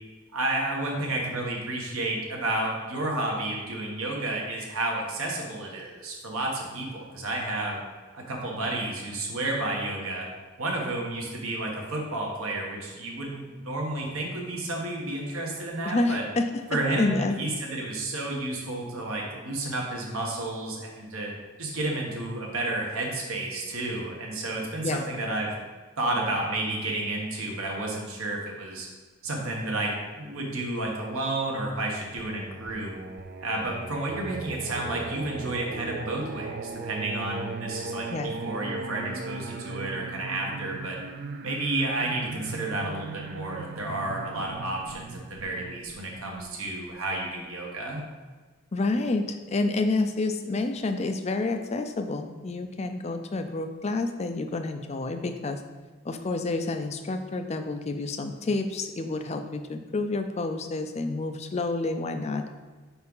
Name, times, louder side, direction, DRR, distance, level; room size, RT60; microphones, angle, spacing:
voice 1, 0.3-7.8 8.1-10.3 10.6-16.2 16.7-21.3 21.6-25.5 26.0-28.9 29.2-32.9 33.4-36.5 36.8-38.1 38.4-41.0 41.4-48.0, right 2 dB, 75° right, -1 dB, 1.3 m, -31 dB
voice 2, 15.9-17.4 24.8-25.0 38.1-38.4 48.7-55.6 56.0-62.4, left 2 dB, 30° left, 6 dB, 0.4 m, -29 dB
Singing, 32.2-46.9, right 4 dB, 45° right, 0.4 m, -38 dB
4.8 x 4.3 x 5.5 m, 1.3 s
head